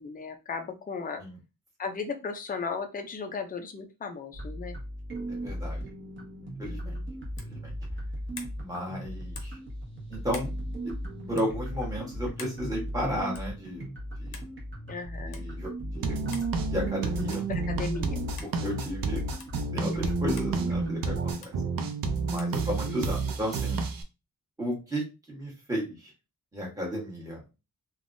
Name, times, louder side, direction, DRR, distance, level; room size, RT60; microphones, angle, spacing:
voice 1, 0.0-1.2 1.8-4.7 6.6-7.1 14.9-15.4 17.5-18.2 22.6-23.1, left 5 dB, 25° left, 5 dB, 0.4 m, -36 dB
sound 1, 4.3-21.3, equal, 30° right, 1.0 m, -37 dB
voice 2, 5.3-5.8 6.6-7.0 7.5-7.7 8.6-9.6 10.1-10.5 10.8-10.9 11.3-13.9 14.2-14.4 15.2-16.2 16.7-17.5 18.4-19.2 19.7-21.5 22.2-23.8 24.6-25.0 25.3-26.1 26.5-27.4, equal, 10° right, -4 dB, 1.1 m, -33 dB
sound 2, 7.3-7.6 8.3-8.6 9.3-9.6 10.3-10.5 11.3-11.5 12.4-12.6 13.3-13.6 14.3-14.5 15.3-15.4 16.3-16.5 17.3-17.5 18.4-18.5 19.4-19.5 20.4-20.5 21.4-21.5 22.4-22.6, left 5 dB, 70° left, 0.7 m, -45 dB
sound 3, 16.0-24.0, right 4 dB, 65° right, 0.5 m, -30 dB
3.4 x 2.2 x 2.5 m, 0.28 s
wide cardioid pair, 170°, 38 cm